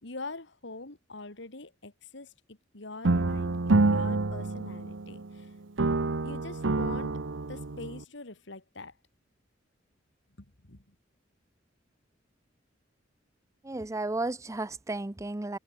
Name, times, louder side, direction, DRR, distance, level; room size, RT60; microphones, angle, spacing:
voice 1, 0.0-5.5 6.2-9.0 10.4-11.0, left 2 dB, 70° left, 2.6 m, -44 dB
sound 1, 3.0-5.4 5.8-8.0, right 3 dB, 80° right, 0.9 m, -27 dB
voice 2, 13.6-15.6, right 2 dB, 15° right, 0.6 m, -33 dB
head